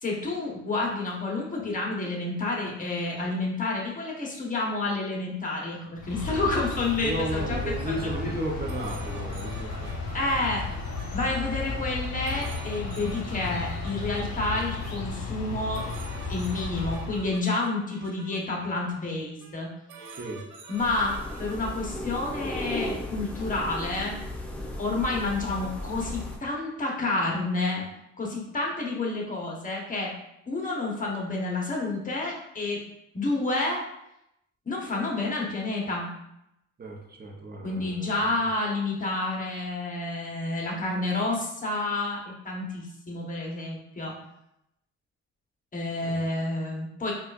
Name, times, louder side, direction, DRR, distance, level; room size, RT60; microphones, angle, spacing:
voice 1, 0.0-8.0 8.2-8.3 10.1-10.6 11.1-15.9 16.3-19.7 20.7-24.2 24.8-27.8 28.2-30.1 30.5-32.8 33.1-33.8 34.7-36.1 37.6-44.1 45.7-47.1, left 2 dB, 25° left, -2 dB, 1.0 m, -29 dB
sound 1, 6.0-17.4, left 4 dB, 60° left, 0.8 m, -34 dB
voice 2, 7.0-10.0 20.1-20.4 36.8-38.3 46.0-46.2, right 1 dB, 30° right, 1 dB, 0.8 m, -34 dB
sound 2, 8.7-11.3 12.3-14.9 15.7-18.4 19.4-19.6 19.9-21.8, right 4 dB, 85° right, 0.5 m, -47 dB
sound 3, 20.8-26.4, left 1 dB, 5° left, 0.5 m, -35 dB
4.3 x 2.4 x 2.5 m, 0.82 s
cardioid pair, 90°, 30 cm